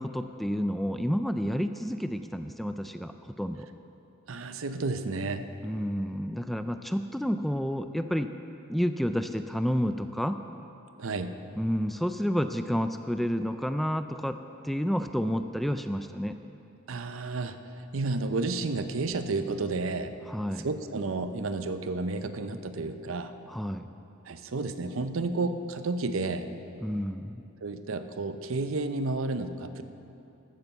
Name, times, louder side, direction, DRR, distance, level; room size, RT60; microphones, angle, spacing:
voice 1, 0.0-3.7 5.6-8.3 8.7-10.4 11.6-14.4 14.6-16.3 20.3-20.7 23.5-23.8 26.8-27.4, equal, ahead, 9 dB, 0.3 m, -30 dB
voice 2, 4.3-5.5 11.0-11.4 16.9-20.2 20.6-23.3 24.3-26.5 27.6-29.8, right 3 dB, 70° right, 10 dB, 0.7 m, -31 dB
13.5 x 9.0 x 7.0 m, 2.9 s
head